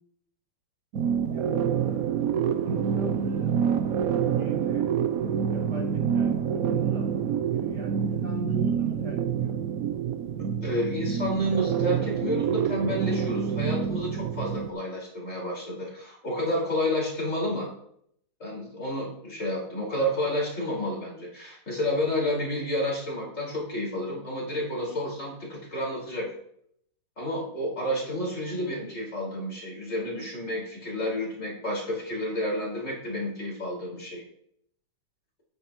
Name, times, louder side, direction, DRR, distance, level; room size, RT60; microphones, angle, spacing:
sound 1, 0.9-14.7, right 8 dB, 65° right, 1.1 m, -27 dB
voice 1, 1.3-1.7 2.7-3.7 4.3-4.9 5.5-9.6, right 2 dB, 80° right, 0 dB, 2.9 m, -38 dB
voice 2, 10.6-17.7 18.4-26.3 27.2-34.2, equal, 50° left, -4 dB, 5.4 m, -30 dB
13.5 x 11.5 x 3.1 m, 0.69 s
omnidirectional pair, 1.7 m